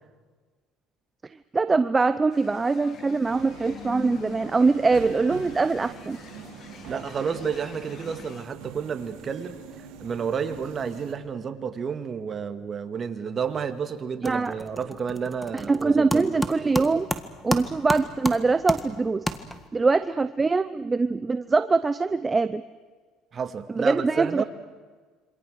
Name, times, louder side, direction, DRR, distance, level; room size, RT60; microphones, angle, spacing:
voice 1, 1.5-6.2 14.2-14.5 15.5-17.1 17.4-19.2 19.7-22.6 23.8-24.4, right 4 dB, 20° right, 12 dB, 0.7 m, -23 dB
sound 1, 2.3-8.5, left 7 dB, 45° left, 1.7 m, -44 dB
Subway metro underground, 3.2-11.1, right 7 dB, 75° right, 3.9 m, -43 dB
voice 2, 6.9-9.6 10.0-16.3 23.3-24.4, right 6 dB, 35° right, 9 dB, 2.1 m, -30 dB
sound 2, 13.4-13.8 14.0-19.9, equal, 5° left, 1.7 m, -32 dB
27.5 x 25.5 x 6.5 m, 1.4 s
cardioid pair, 110°, 0 cm